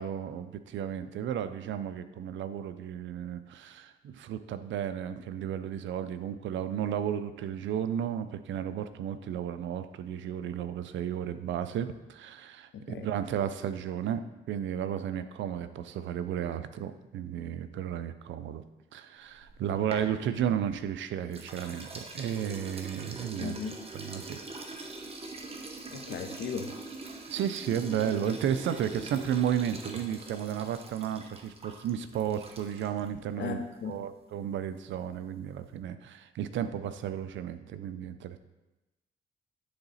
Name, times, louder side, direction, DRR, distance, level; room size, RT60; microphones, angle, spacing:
voice 1, 0.0-14.2 14.5-18.6 18.9-23.6 23.9-24.4 27.3-38.4, right 9 dB, 70° right, 11 dB, 0.5 m, -33 dB
voice 2, 12.7-13.1 23.4-23.8 25.9-26.8 28.2-28.3 33.4-33.6 33.8-34.0, left 6 dB, 65° left, 6 dB, 0.9 m, -36 dB
sound 1, 19.3-20.9 21.3-33.1, right 3 dB, 30° right, 1.0 m, -43 dB
9.7 x 3.9 x 4.1 m, 1.0 s
cardioid pair, 90°, 20 cm